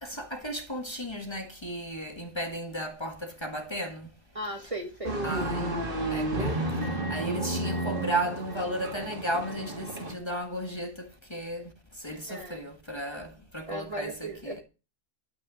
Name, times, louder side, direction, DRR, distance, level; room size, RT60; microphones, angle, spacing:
voice 1, 0.0-4.1 5.2-5.8 6.1-14.6, right 1 dB, 25° left, 1.6 m, -35 dB
voice 2, 4.3-5.2 12.3-12.6 13.7-14.6, right 1 dB, 30° right, 1.7 m, -36 dB
sound 1, 5.0-10.1, right 1 dB, 50° right, 2.2 m, -31 dB
11.5 x 6.3 x 6.3 m
omnidirectional pair, 1.2 m